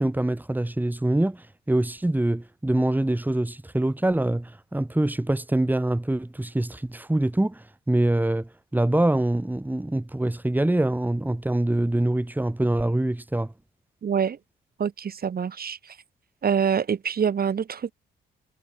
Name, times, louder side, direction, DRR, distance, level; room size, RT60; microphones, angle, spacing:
voice 1, 0.0-13.5, right 1 dB, 10° right, 4.1 m, -24 dB
voice 2, 14.0-14.4 14.8-15.8 16.4-17.9, right 7 dB, 50° right, 5.3 m, -25 dB
cardioid pair, 90°, 20 cm